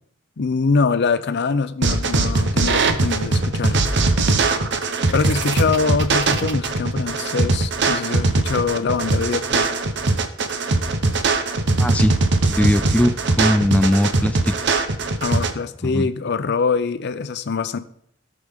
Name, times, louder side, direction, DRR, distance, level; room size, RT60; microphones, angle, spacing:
voice 1, 0.4-3.9 5.1-9.7 15.2-17.8, left 4 dB, 55° left, 0.6 m, -23 dB
sound 1, 1.8-15.5, right 3 dB, 60° right, 0.9 m, -20 dB
voice 2, 11.8-12.2 12.5-14.5 15.8-16.1, left 1 dB, 5° left, 0.3 m, -19 dB
17.0 x 6.2 x 3.6 m
head